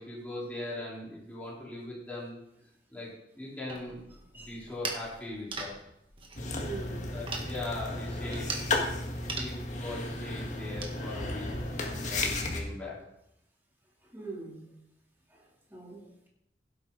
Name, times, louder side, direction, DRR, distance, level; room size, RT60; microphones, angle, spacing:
voice 1, 0.0-2.4 2.9-4.0 4.3-5.8 6.5-8.5 9.2-13.0, left 2 dB, 10° left, -6 dB, 4.0 m, -40 dB
sound 1, 3.7-11.0, right 3 dB, 30° right, 1.6 m, -42 dB
sound 2, 6.4-12.6, left 2 dB, 45° left, 1.7 m, -34 dB
voice 2, 6.6-7.1 14.1-14.6 15.3-16.3, right 3 dB, 10° right, -3 dB, 3.1 m, -43 dB
16.5 x 8.4 x 4.0 m, 0.81 s
head